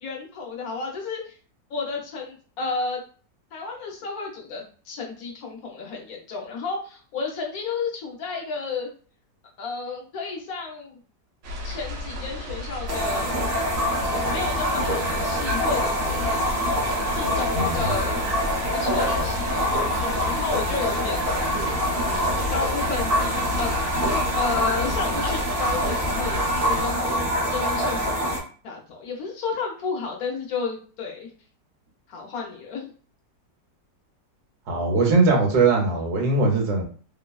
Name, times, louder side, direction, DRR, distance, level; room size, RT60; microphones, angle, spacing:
voice 1, 0.0-1.3 1.7-3.0 3.5-8.9 9.6-11.0 11.6-13.3 14.3-16.4 17.1-18.2 18.7-21.2 21.9-23.7 24.0-27.2 27.5-28.1 28.6-31.3 32.1-32.9, left 4 dB, 65° left, 0 dB, 1.1 m, -32 dB
sound 1, 11.4-26.9, left 1 dB, 90° right, 1.3 m, -33 dB
sound 2, 12.9-28.4, equal, 45° right, 0.8 m, -25 dB
voice 2, 34.7-36.8, right 3 dB, 70° right, 0 dB, 1.3 m, -20 dB
3.0 x 2.1 x 2.3 m, 0.40 s
omnidirectional pair, 1.9 m